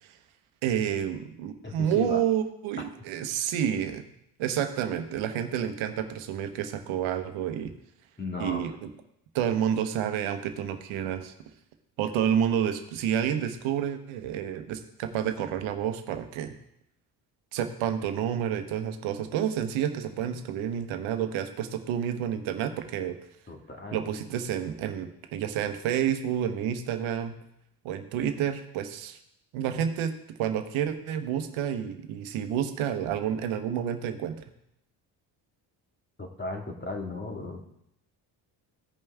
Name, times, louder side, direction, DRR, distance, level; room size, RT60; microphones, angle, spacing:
voice 1, 0.6-4.0 4.4-7.7 8.4-8.9 9.3-11.3 12.0-16.5 17.5-23.2 23.9-27.3 27.8-29.2 29.5-30.1 30.4-34.4, right 9 dB, 75° right, 8 dB, 1.1 m, -29 dB
voice 2, 1.6-2.2 2.8-2.9 8.2-8.7 23.5-24.0 36.2-37.6, left 2 dB, 25° left, 2 dB, 2.1 m, -36 dB
15.5 x 5.4 x 3.5 m, 0.78 s
supercardioid pair, 60°, 48 cm